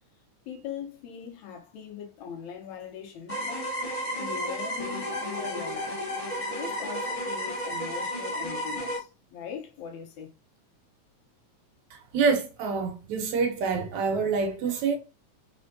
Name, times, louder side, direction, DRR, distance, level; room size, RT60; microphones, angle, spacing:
voice 1, 0.5-3.7 4.2-6.0 6.5-10.3, left 8 dB, 80° left, 2.2 m, -40 dB
sound 1, 3.3-9.0, equal, 35° left, 0.5 m, -32 dB
voice 2, 11.9-15.0, right 5 dB, 80° right, 2.2 m, -26 dB
4.3 x 4.3 x 2.6 m
omnidirectional pair, 3.4 m